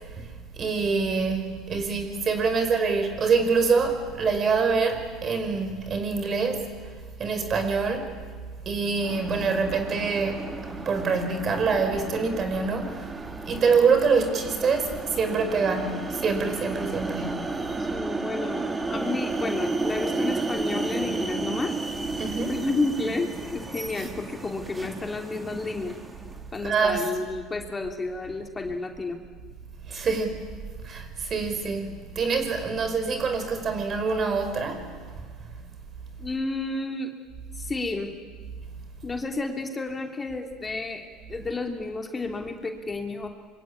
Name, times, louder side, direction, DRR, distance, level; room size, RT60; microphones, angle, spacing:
voice 1, 0.6-6.7 7.2-8.1 8.6-13.1 13.4-17.5 22.2-22.6 26.6-27.0 29.9-30.4 30.8-34.9, right 4 dB, 40° right, 5.1 m, -25 dB
sound 1, 9.0-26.5, right 3 dB, 20° right, 3.0 m, -33 dB
voice 2, 17.9-21.7 22.5-26.0 26.5-29.2 36.2-37.1 37.5-38.1 39.0-43.3, left 3 dB, 20° left, 3.2 m, -31 dB
25.5 x 23.0 x 9.9 m
hypercardioid pair, 70°, 0 cm